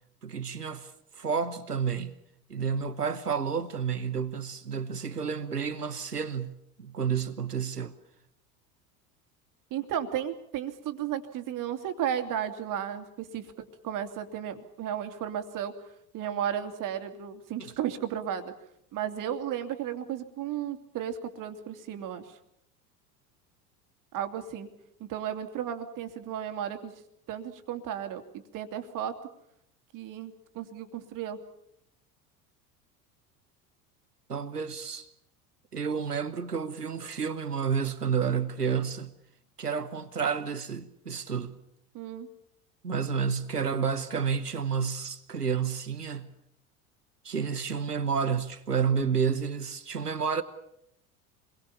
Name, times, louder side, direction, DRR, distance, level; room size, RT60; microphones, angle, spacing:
voice 1, 0.2-2.2 2.5-7.9 17.6-17.7 34.3-35.1 35.7-39.1 39.6-41.6 42.8-46.3 47.2-50.4, right 6 dB, 90° right, 1.1 m, -30 dB
voice 2, 9.7-15.7 16.1-18.5 18.9-22.4 24.1-24.7 25.0-26.9 27.3-29.2 29.9-31.4 41.9-42.3, right 9 dB, 45° right, 2.7 m, -34 dB
26.5 x 22.0 x 7.2 m
figure-of-eight pair, 75°, 46 cm